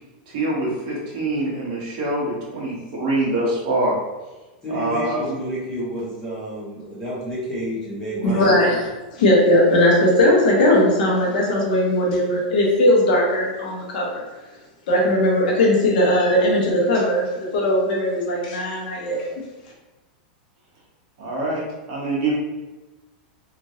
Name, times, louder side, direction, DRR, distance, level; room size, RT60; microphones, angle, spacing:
voice 1, 0.3-4.0 4.7-5.3 21.2-21.6 21.9-22.3, right 2 dB, 40° right, -5 dB, 1.0 m, -24 dB
voice 2, 4.6-8.5, equal, 10° left, -8 dB, 0.8 m, -30 dB
voice 3, 8.2-14.2 14.9-19.3, left 1 dB, 65° left, -3 dB, 1.0 m, -18 dB
2.9 x 2.5 x 2.7 m, 1.1 s
supercardioid pair, 170°, 5 cm